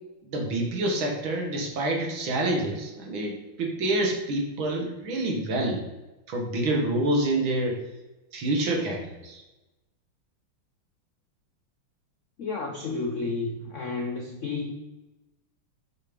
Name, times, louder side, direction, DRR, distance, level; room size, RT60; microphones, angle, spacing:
voice 1, 0.2-5.8 6.3-7.8 8.3-9.4, right 1 dB, 65° right, 1 dB, 2.1 m, -27 dB
voice 2, 12.4-14.7, left 3 dB, 65° left, 2 dB, 0.7 m, -31 dB
6.8 x 4.9 x 5.2 m, 1.0 s
omnidirectional pair, 2.4 m